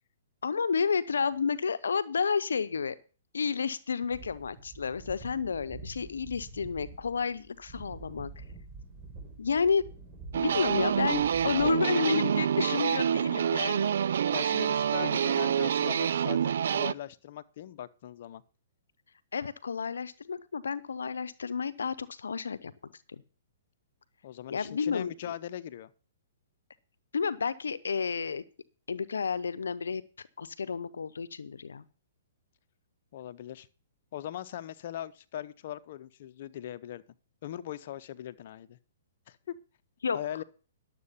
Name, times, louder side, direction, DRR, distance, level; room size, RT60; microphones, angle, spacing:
voice 1, 0.4-3.0 3.3-8.4 9.4-9.9 10.3-13.9 15.0-15.2 19.3-22.7 23.1-23.2 24.5-25.3 27.1-28.4 28.9-30.0 30.4-31.8 40.0-40.2, left 5 dB, 85° left, 15 dB, 0.7 m, -31 dB
sound 1, 4.1-11.7, right 3 dB, 20° right, 4.7 m, -47 dB
sound 2, 10.3-16.9, right 8 dB, 70° right, 0.4 m, -27 dB
voice 2, 14.3-18.4 24.2-25.9 33.1-33.7 34.1-37.0 37.4-38.8 39.3-39.5 40.1-40.4, left 11 dB, 55° left, 11 dB, 0.8 m, -40 dB
11.5 x 7.6 x 5.6 m, 0.37 s
hypercardioid pair, 135°, 0 cm